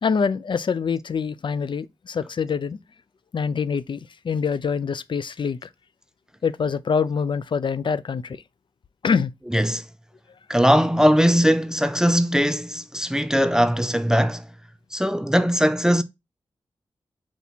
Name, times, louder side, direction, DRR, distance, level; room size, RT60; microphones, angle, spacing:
voice 1, 0.0-2.8 3.3-5.7 6.4-8.4 9.0-9.3, left 6 dB, 55° left, 0.4 m, -25 dB
voice 2, 9.5-9.8 10.5-14.5 14.9-16.0, equal, 5° right, 0.5 m, -20 dB
4.6 x 2.8 x 4.0 m
cardioid pair, 50°, 10 cm